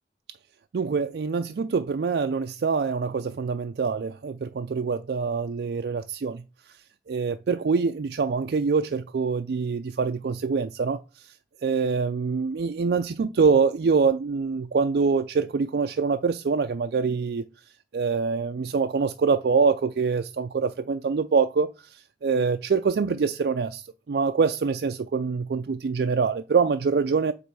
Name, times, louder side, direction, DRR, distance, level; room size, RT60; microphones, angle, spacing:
voice 1, 0.7-6.4 7.1-11.0 11.6-17.4 17.9-27.3, right 5 dB, 60° right, 0.4 m, -25 dB
7.8 x 3.1 x 4.7 m
head